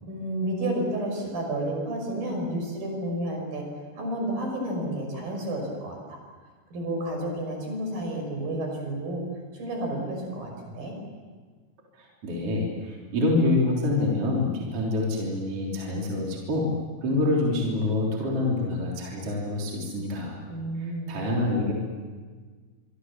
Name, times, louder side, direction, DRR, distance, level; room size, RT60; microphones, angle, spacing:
voice 1, 0.0-3.6 4.0-6.2 6.7-9.2 9.5-10.9 20.5-21.2, right 1 dB, 60° right, 2 dB, 7.4 m, -31 dB
voice 2, 12.0-16.7 17.0-20.4 20.8-21.7, left 2 dB, 40° right, -2 dB, 4.2 m, -26 dB
25.5 x 25.0 x 7.4 m, 1.5 s
omnidirectional pair, 4.6 m